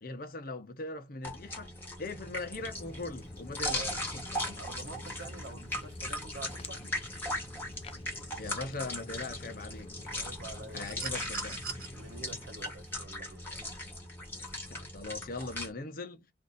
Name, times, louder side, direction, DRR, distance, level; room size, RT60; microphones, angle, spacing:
voice 1, 0.0-4.6 6.8-6.9 8.4-9.9 10.7-11.6 14.6-16.3, left 3 dB, 50° left, 0.8 m, -41 dB
sound 1, 1.2-15.7, left 1 dB, 10° left, 1.2 m, -39 dB
Walk footsteps, 2.6-12.5, left 2 dB, 35° left, 0.5 m, -48 dB
voice 2, 3.5-4.0 4.5-6.8 10.1-11.1 11.9-13.5, right 3 dB, 80° right, 1.0 m, -47 dB
sound 2, 10.8-11.9 13.4-13.5, right 6 dB, 55° right, 0.9 m, -41 dB
2.7 x 2.6 x 3.8 m
head